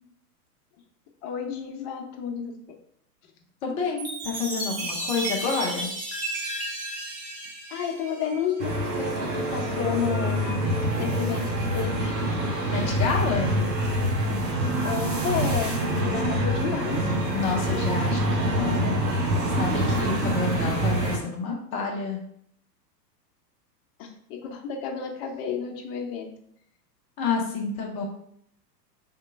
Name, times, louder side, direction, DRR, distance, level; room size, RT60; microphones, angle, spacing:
voice 1, 1.2-2.5 7.7-10.6 11.0-12.1 14.8-17.1 24.0-26.3, left 7 dB, 30° left, 2 dB, 0.7 m, -31 dB
voice 2, 3.6-5.9 12.6-13.6 17.3-19.0 19.5-22.2 27.2-28.0, left 4 dB, 15° left, -1 dB, 0.4 m, -29 dB
Chime, 4.0-8.6, right 1 dB, 30° right, 1.5 m, -33 dB
sound 1, 8.6-21.2, right 1 dB, 90° right, 1.4 m, -26 dB
3.7 x 3.0 x 4.5 m, 0.69 s
hypercardioid pair, 125°, 49 cm